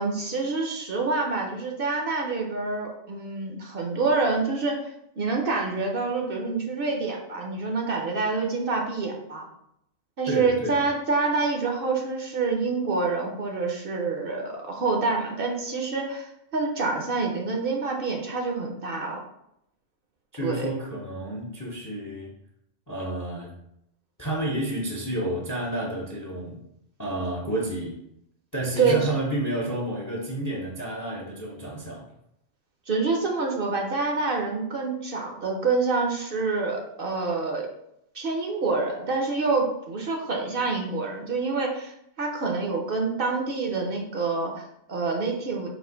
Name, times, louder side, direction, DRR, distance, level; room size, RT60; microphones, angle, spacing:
voice 1, 0.0-4.8 5.2-9.5 10.2-19.2 20.4-20.7 28.8-29.1 32.9-37.7 38.1-45.7, right 4 dB, 55° right, 0 dB, 0.8 m, -27 dB
voice 2, 10.3-10.8 20.3-22.3 22.9-23.5 24.2-26.6 27.0-28.0 28.5-32.0, right 1 dB, 25° left, -3 dB, 0.5 m, -30 dB
4.2 x 2.6 x 3.7 m, 0.79 s
omnidirectional pair, 1.2 m